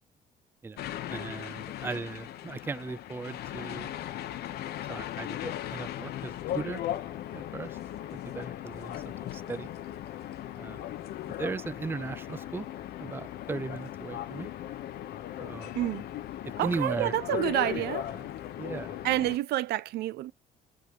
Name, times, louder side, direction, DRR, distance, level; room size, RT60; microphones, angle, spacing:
voice 1, 0.6-3.9 4.8-6.8 7.3-7.8 8.2-9.7 10.6-10.8 11.4-12.7 13.0-14.5 15.4-15.7 16.4-17.1 17.8-18.3 18.6-19.1, right 4 dB, 15° right, 0.4 m, -37 dB
sound 1, 0.8-19.4, left 12 dB, 70° left, 1.1 m, -38 dB
voice 2, 15.7-16.1 16.6-18.0 19.0-20.3, right 14 dB, 75° right, 0.7 m, -28 dB
8.5 x 3.9 x 3.8 m
cardioid pair, 110°, 17 cm